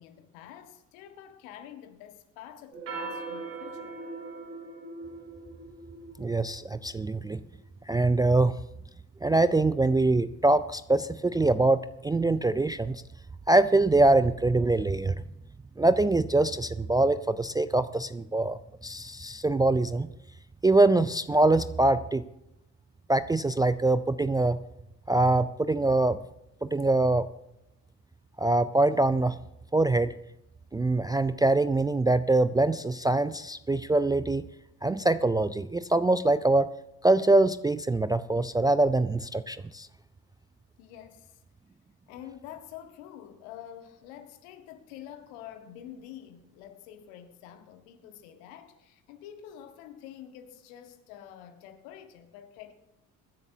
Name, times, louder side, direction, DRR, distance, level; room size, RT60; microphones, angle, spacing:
voice 1, 0.0-4.0 40.8-41.4 42.1-52.7, left 10 dB, 70° left, 1.7 m, -47 dB
sound 1, 2.7-7.5, right 3 dB, 75° right, 5.9 m, -40 dB
voice 2, 6.2-7.4 7.9-8.6 9.2-13.0 13.5-15.2 15.8-20.1 20.6-22.2 23.1-24.6 25.1-26.2 26.6-27.3 28.4-29.4 29.7-30.1 30.7-34.5 34.8-36.7 37.0-39.9, right 2 dB, 10° right, 0.4 m, -24 dB
23.5 x 10.5 x 2.8 m
hypercardioid pair, 55°, 44 cm